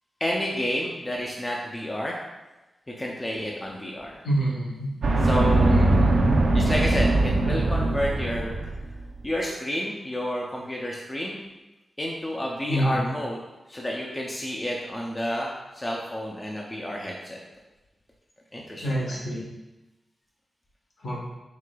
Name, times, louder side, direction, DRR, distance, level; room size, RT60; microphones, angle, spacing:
voice 1, 0.2-2.2 3.0-4.2 5.2-6.0 6.5-8.7 9.2-11.4 12.0-13.4 13.7-17.4 18.5-19.2, equal, 15° left, -2 dB, 0.4 m, -30 dB
voice 2, 4.2-4.9 5.7-6.2 12.7-13.1 18.8-19.4 21.0-21.2, right 1 dB, 65° left, -4 dB, 1.0 m, -27 dB
sound 1, 5.0-8.9, right 2 dB, 85° right, 0.5 m, -21 dB
4.7 x 3.7 x 2.2 m, 1.1 s
wide cardioid pair, 170°, 0 cm